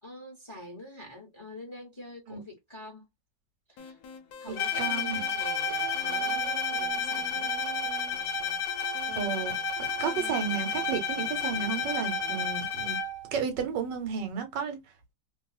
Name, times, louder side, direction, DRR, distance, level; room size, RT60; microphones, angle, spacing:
voice 1, 0.0-3.0 3.7-4.0 4.4-7.5, left 1 dB, 20° left, 0.8 m, -46 dB
sound 1, 3.8-12.5, left 5 dB, 65° left, 1.1 m, -47 dB
voice 2, 4.5-5.2 9.2-9.5 9.8-13.0 13.3-14.8, right 7 dB, 80° right, 1.5 m, -32 dB
Bowed string instrument, 4.6-13.3, left 4 dB, 80° left, 1.3 m, -31 dB
2.8 x 2.7 x 2.3 m
omnidirectional pair, 1.9 m